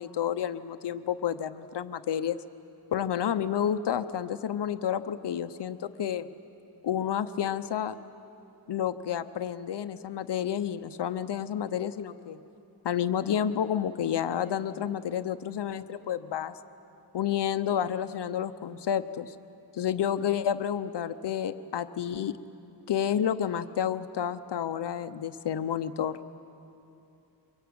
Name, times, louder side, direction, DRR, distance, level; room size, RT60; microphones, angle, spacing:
voice 1, 0.0-2.4 2.9-6.3 6.8-7.9 8.7-12.4 12.8-16.6 17.1-19.3 19.7-22.3 22.9-26.2, left 9 dB, 70° left, 11 dB, 0.8 m, -30 dB
24.5 x 22.5 x 8.6 m, 2.8 s
wide cardioid pair, 155°, 43 cm